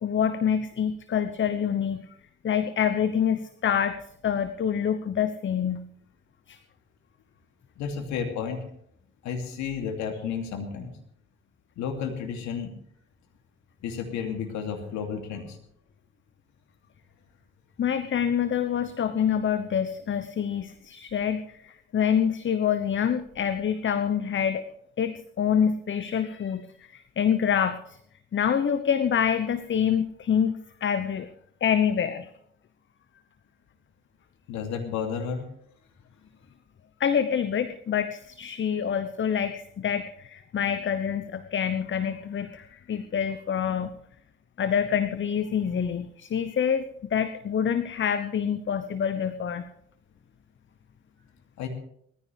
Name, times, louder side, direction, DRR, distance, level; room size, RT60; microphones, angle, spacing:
voice 1, 0.0-2.0 2.4-5.9 6.5-6.6 17.8-24.6 25.0-28.0 28.3-30.5 30.8-31.3 31.6-32.3 37.0-43.9 44.6-46.8 47.1-49.7, left 8 dB, 40° left, 12 dB, 1.0 m, -26 dB
voice 2, 7.8-8.6 9.2-10.9 11.8-12.7 13.8-15.6 34.5-35.4 51.6-51.7, left 6 dB, 70° left, 4 dB, 2.7 m, -32 dB
19.0 x 14.5 x 3.4 m, 0.70 s
hypercardioid pair, 50°, 29 cm